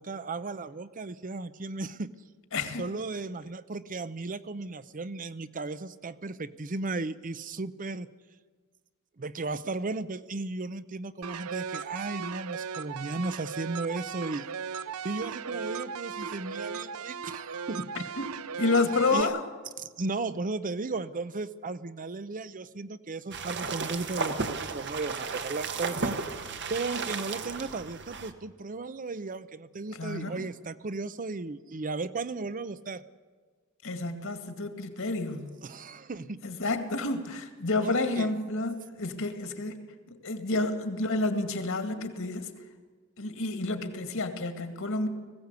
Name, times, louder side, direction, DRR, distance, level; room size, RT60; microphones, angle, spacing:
voice 1, 0.0-2.1 2.8-8.1 9.2-14.5 15.0-18.1 19.1-19.3 19.8-26.2 26.7-33.0 35.6-36.4 37.8-38.3, right 3 dB, 40° right, 14 dB, 0.6 m, -35 dB
voice 2, 2.5-2.9 18.2-18.3 18.6-19.4 30.0-30.4 33.8-35.5 36.4-39.8 40.1-42.5 43.2-45.1, left 2 dB, 65° left, 8 dB, 2.2 m, -29 dB
sound 1, 11.2-19.2, right 6 dB, 90° right, 0.6 m, -37 dB
sound 2, 23.3-28.3, right 4 dB, 55° right, 1.3 m, -34 dB
20.0 x 16.0 x 8.2 m, 1.5 s
head